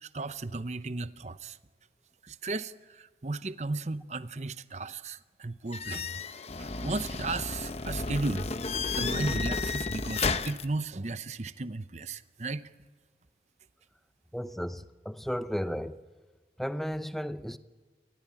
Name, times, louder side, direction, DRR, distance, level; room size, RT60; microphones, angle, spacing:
voice 1, 0.0-1.6 2.2-6.2 6.6-8.5 9.0-12.7, right 3 dB, 40° right, 0.8 m, -35 dB
sound 1, 5.7-10.6, left 4 dB, 35° left, 0.9 m, -32 dB
voice 2, 14.3-16.0 16.6-17.6, equal, ahead, 0.7 m, -34 dB
28.0 x 20.0 x 8.5 m
head